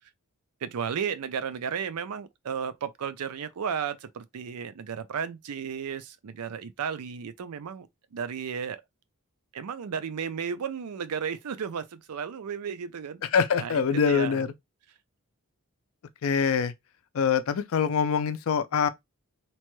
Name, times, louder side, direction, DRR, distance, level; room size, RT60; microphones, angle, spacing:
voice 1, 0.6-8.8 9.5-13.2 13.6-14.4, right 7 dB, 85° right, 0.4 m, -34 dB
voice 2, 13.3-14.5 16.2-16.7 17.1-18.9, left 6 dB, 65° left, 0.4 m, -24 dB
2.9 x 2.2 x 3.0 m
head